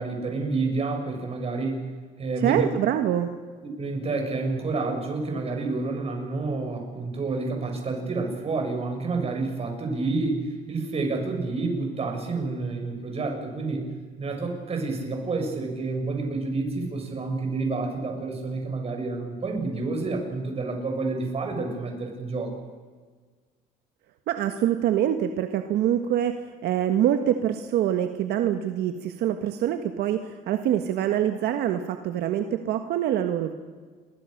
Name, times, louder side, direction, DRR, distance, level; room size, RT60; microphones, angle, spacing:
voice 1, 0.0-1.8 2.2-2.6 3.8-13.9 14.2-22.6, right 3 dB, 35° right, 3 dB, 7.2 m, -29 dB
voice 2, 2.4-3.3 24.3-33.5, right 10 dB, 75° right, 7 dB, 1.6 m, -25 dB
28.5 x 23.5 x 6.7 m, 1.5 s
cardioid pair, 110°, 17 cm